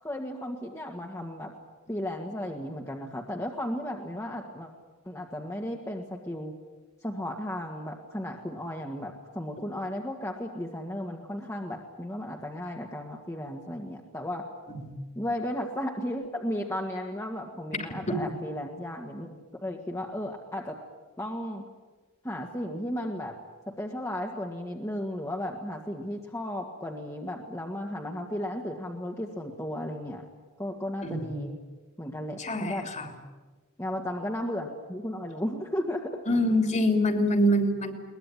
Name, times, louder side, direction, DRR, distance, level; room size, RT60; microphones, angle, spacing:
voice 1, 0.0-1.5 1.9-4.7 5.0-6.5 7.0-14.5 15.2-20.8 21.2-21.6 22.2-23.4 23.7-30.3 30.6-31.6 32.0-32.9 33.8-36.2, left 1 dB, 15° left, 1 dB, 1.9 m, -34 dB
voice 2, 31.0-31.4 32.4-33.1 36.3-38.0, equal, 35° left, 6 dB, 3.0 m, -25 dB
22.5 x 20.5 x 9.9 m, 1.3 s
head